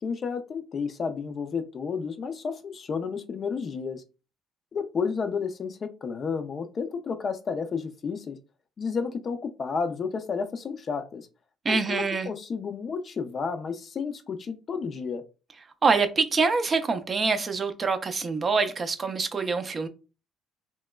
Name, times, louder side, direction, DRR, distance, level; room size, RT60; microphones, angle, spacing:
voice 1, 0.0-4.0 4.7-8.4 8.8-11.3 11.7-15.2, left 5 dB, 40° left, 0.4 m, -31 dB
voice 2, 11.7-12.3 15.8-19.9, right 4 dB, 30° right, 0.4 m, -25 dB
3.1 x 2.9 x 2.2 m
cardioid pair, 125°, 0 cm